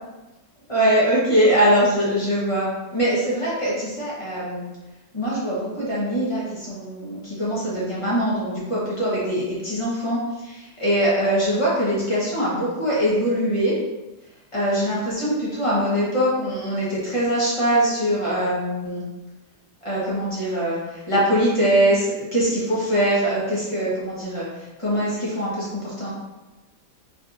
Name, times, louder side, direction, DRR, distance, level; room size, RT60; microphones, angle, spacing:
voice 1, 0.7-4.6 5.1-13.7 14.5-19.0 19.8-26.1, equal, 20° left, -8 dB, 1.2 m, -22 dB
4.9 x 3.3 x 2.6 m, 1.1 s
omnidirectional pair, 1.9 m